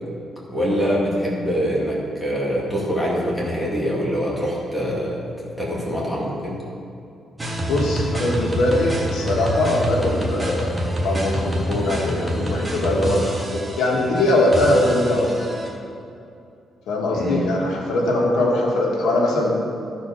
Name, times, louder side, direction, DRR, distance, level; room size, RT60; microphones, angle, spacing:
voice 1, 0.5-5.2 5.6-6.6 17.1-17.4, equal, ahead, -6 dB, 2.0 m, -24 dB
sound 1, 7.4-15.7, right 1 dB, 15° right, 1.2 m, -27 dB
voice 2, 7.7-15.5 16.9-19.5, left 1 dB, 90° left, -2 dB, 1.7 m, -21 dB
13.0 x 4.6 x 5.7 m, 2.5 s
cardioid pair, 160°, 0 cm